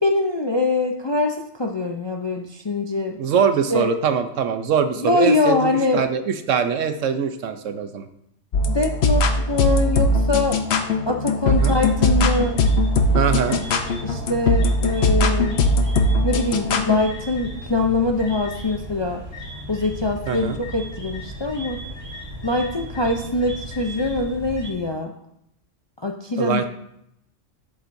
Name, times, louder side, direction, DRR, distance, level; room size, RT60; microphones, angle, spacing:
voice 1, 0.0-3.2 3.7-3.9 5.0-6.0 8.7-10.6 11.1-12.6 14.0-15.6 16.2-19.2 19.7-21.8 22.4-25.1 26.0-26.6, left 2 dB, 35° left, 2 dB, 0.4 m, -23 dB
voice 2, 3.2-8.1 11.6-11.8 13.1-13.6 20.3-20.6 26.4-26.7, right 7 dB, 75° right, 9 dB, 1.0 m, -22 dB
sound 1, 8.5-17.0, left 2 dB, 60° left, 0.9 m, -20 dB
sound 2, 11.5-24.7, right 1 dB, 15° right, 2.7 m, -36 dB
11.5 x 7.3 x 2.6 m, 0.77 s
omnidirectional pair, 1.3 m